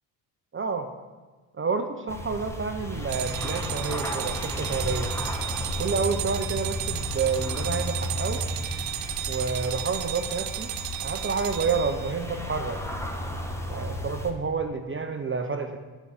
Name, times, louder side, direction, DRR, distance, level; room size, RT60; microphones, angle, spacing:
voice 1, 0.5-0.9 1.5-5.1 5.8-8.4 9.3-10.7 11.0-12.8 13.7-15.8, right 5 dB, 30° right, 7 dB, 0.7 m, -29 dB
sound 1, 2.1-14.3, left 1 dB, 5° left, 1.2 m, -33 dB
sound 2, 3.1-12.1, right 13 dB, 80° right, 0.7 m, -34 dB
8.2 x 5.6 x 7.8 m, 1.3 s
cardioid pair, 80°, 44 cm